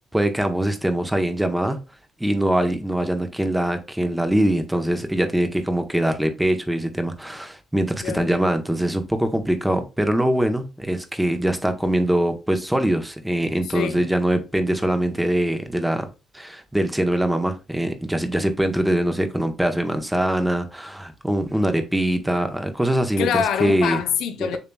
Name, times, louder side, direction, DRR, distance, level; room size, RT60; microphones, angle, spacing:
voice 1, 0.1-1.8 2.2-16.0 16.3-23.3 23.6-24.0, right 1 dB, 5° right, 0.8 m, -23 dB
voice 2, 13.6-14.0 23.2-24.6, left 8 dB, 85° left, 0.6 m, -25 dB
6.8 x 2.9 x 2.2 m
cardioid pair, 90°, 0 cm